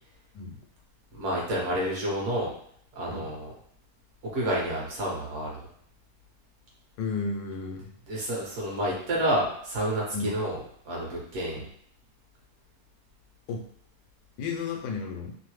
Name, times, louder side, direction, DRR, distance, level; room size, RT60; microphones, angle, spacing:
voice 1, 0.3-0.6 3.1-3.3 7.0-7.9 10.1-10.3 13.5-13.7 14.4-15.4, left 4 dB, 80° left, 2 dB, 1.2 m, -33 dB
voice 2, 1.1-2.5 2.9-3.5 4.3-5.7 8.1-10.6 10.8-11.7, right 1 dB, 50° right, -4 dB, 1.2 m, -29 dB
3.1 x 2.0 x 3.1 m, 0.64 s
omnidirectional pair, 1.8 m